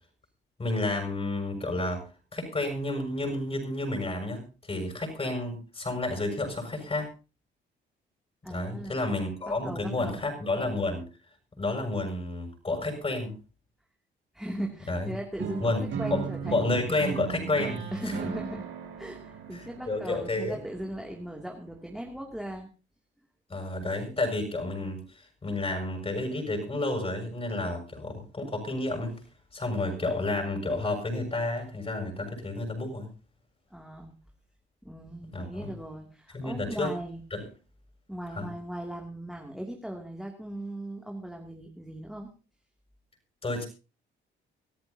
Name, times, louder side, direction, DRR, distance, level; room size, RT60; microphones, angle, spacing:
voice 1, 0.6-2.0 2.3-7.1 8.5-11.0 11.6-13.3 14.9-15.1 15.6-16.3 16.5-18.1 19.5-20.6 23.5-29.2 29.5-33.1 35.3-35.7 36.3-36.9 37.3-37.4 38.4-38.5 43.4-43.7, left 2 dB, 30° left, 3 dB, 7.1 m, -30 dB
voice 2, 8.4-9.0 9.5-10.3 14.3-17.0 17.9-18.7 19.0-22.7 33.7-34.1 34.8-37.2 38.1-42.3, right 1 dB, ahead, 0 dB, 2.7 m, -38 dB
sound 1, 15.4-21.3, right 7 dB, 75° right, 6.0 m, -37 dB
24.5 x 14.0 x 2.8 m, 0.34 s
cardioid pair, 90°, 20 cm